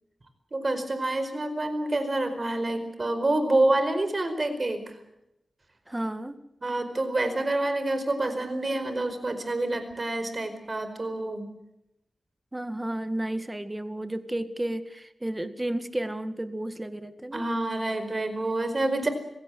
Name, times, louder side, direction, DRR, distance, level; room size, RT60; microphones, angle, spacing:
voice 1, 0.5-4.8 6.6-11.5 17.3-19.1, right 2 dB, 35° right, 9 dB, 4.8 m, -27 dB
voice 2, 5.9-6.4 12.5-17.5, right 1 dB, 15° right, 11 dB, 1.9 m, -32 dB
27.0 x 17.0 x 7.7 m, 0.83 s
wide cardioid pair, 80°, 0 cm